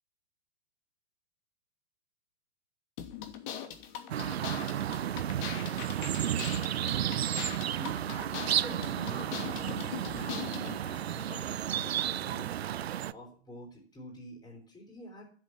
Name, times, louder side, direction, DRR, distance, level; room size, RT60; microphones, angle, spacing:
sound 1, 3.0-10.8, left 9 dB, 45° left, 2.8 m, -41 dB
sound 2, 4.1-13.1, right 10 dB, 70° right, 0.7 m, -32 dB
voice 1, 8.5-12.5 13.1-15.2, left 1 dB, 15° left, 0 dB, 5.0 m, -48 dB
12.0 x 7.9 x 9.8 m, 0.42 s
hypercardioid pair, 110°, 32 cm